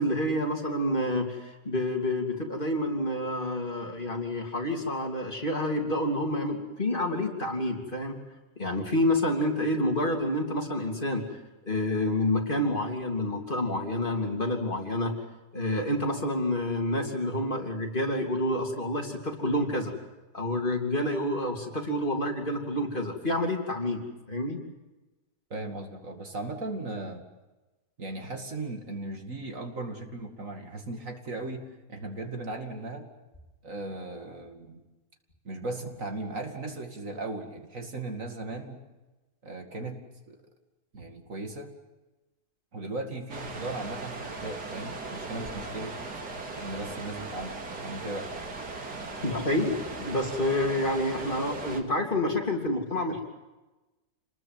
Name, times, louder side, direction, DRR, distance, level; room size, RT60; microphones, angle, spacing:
voice 1, 0.0-8.2 8.6-11.2 11.7-15.1 15.5-19.9 20.3-24.0 24.3-24.6 49.2-53.2, left 1 dB, 30° left, 2 dB, 3.4 m, -28 dB
voice 2, 25.5-27.2 28.0-33.0 33.6-34.8 35.4-38.8 39.4-40.0 40.3-40.4 40.9-41.7 42.7-45.9 46.6-48.3, right 2 dB, 55° right, 4 dB, 2.7 m, -37 dB
sound 1, 43.3-51.8, right 3 dB, 85° right, 3.1 m, -38 dB
28.0 x 20.5 x 7.7 m, 1.1 s
omnidirectional pair, 1.7 m